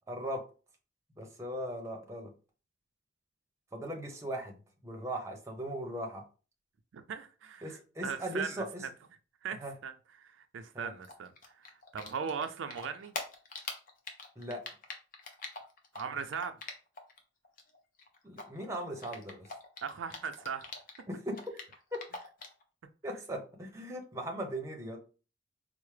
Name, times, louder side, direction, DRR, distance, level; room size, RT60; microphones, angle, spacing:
voice 1, 0.1-0.4 1.2-2.3 3.7-6.3 7.6-8.9 9.5-9.7 10.7-10.9 14.4-14.6 18.2-19.5 21.1-21.4 21.9-22.0 23.0-25.0, right 1 dB, 15° right, 0.6 m, -38 dB
voice 2, 6.9-7.7 8.0-8.5 9.4-9.9 10.2-13.1 15.9-16.6 19.8-20.7, right 6 dB, 80° right, 0.4 m, -38 dB
Typing, 11.0-12.5 12.7-17.2 17.4-21.0 21.3-22.6, left 3 dB, 45° left, 0.7 m, -43 dB
4.5 x 2.0 x 3.2 m
head